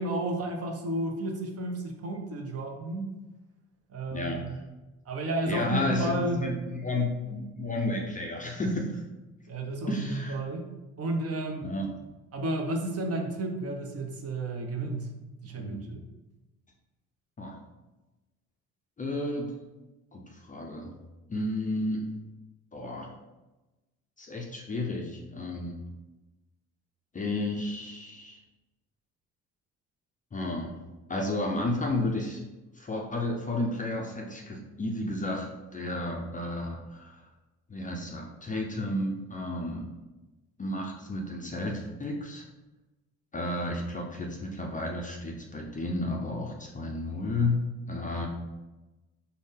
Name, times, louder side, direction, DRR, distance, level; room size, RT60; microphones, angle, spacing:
voice 1, 0.0-3.1 3.9-4.5 5.1-6.4 9.5-10.7 11.0-11.7 12.3-15.1 15.4-16.0, right 1 dB, 35° right, 2 dB, 0.7 m, -32 dB
voice 2, 4.1-4.6 5.4-9.0 9.9-10.4 11.6-11.9 15.6-15.9 17.4-17.6 19.0-19.5 20.1-21.0 21.3-22.1 22.7-23.1 24.2-25.8 27.1-28.4 30.3-30.8 31.1-32.4 32.7-37.2 37.7-39.9 40.6-42.5 43.3-47.6 47.9-48.3, left 2 dB, 20° left, 0 dB, 0.5 m, -32 dB
3.8 x 2.1 x 3.6 m, 1.1 s
hypercardioid pair, 50°, 41 cm